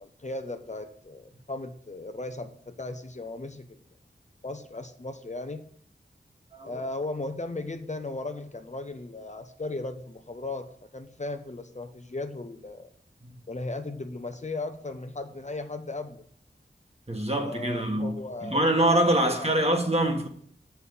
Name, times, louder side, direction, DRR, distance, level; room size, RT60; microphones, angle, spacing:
voice 1, 0.0-3.8 4.4-5.6 6.6-12.9 13.5-16.3 17.3-18.6 19.2-19.7, left 2 dB, 40° left, 0.7 m, -36 dB
voice 2, 17.1-20.3, right 1 dB, 30° right, 1.5 m, -25 dB
6.7 x 5.8 x 7.1 m
wide cardioid pair, 50°, 19 cm